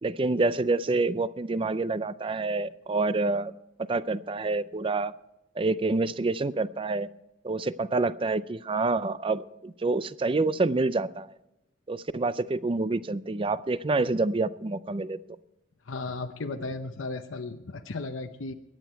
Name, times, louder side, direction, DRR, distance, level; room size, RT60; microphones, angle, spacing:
voice 1, 0.0-3.5 3.9-5.1 5.6-7.1 7.4-11.3 11.9-15.2, right 3 dB, 25° right, 16 dB, 0.4 m, -27 dB
voice 2, 15.9-18.5, left 3 dB, 85° left, 6 dB, 0.8 m, -35 dB
21.5 x 9.4 x 4.5 m, 0.89 s
head